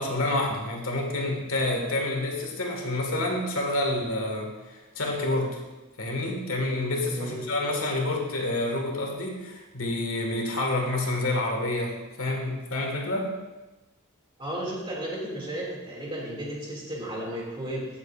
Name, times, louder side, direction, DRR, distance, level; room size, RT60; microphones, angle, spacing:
voice 1, 0.0-5.6 6.0-13.3, left 2 dB, 70° left, 1 dB, 1.8 m, -28 dB
voice 2, 7.1-7.5 14.4-17.9, right 1 dB, 25° right, -3 dB, 2.4 m, -34 dB
15.5 x 7.4 x 2.5 m, 1.1 s
head